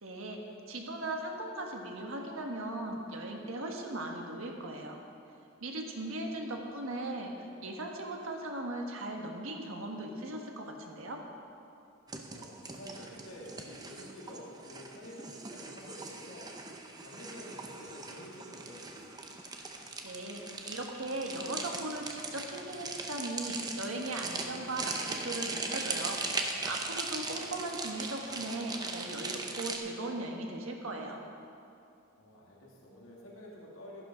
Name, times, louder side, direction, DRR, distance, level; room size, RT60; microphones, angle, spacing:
voice 1, 0.0-5.0 5.6-11.2 20.0-31.2, right 2 dB, 75° right, 1 dB, 1.5 m, -38 dB
sound 1, 12.1-29.8, right 3 dB, 20° right, 0.7 m, -39 dB
voice 2, 12.3-16.5 17.0-19.0 27.2-27.6 32.2-34.0, equal, 75° left, -4 dB, 2.4 m, -49 dB
11.5 x 11.5 x 5.1 m, 2.6 s
head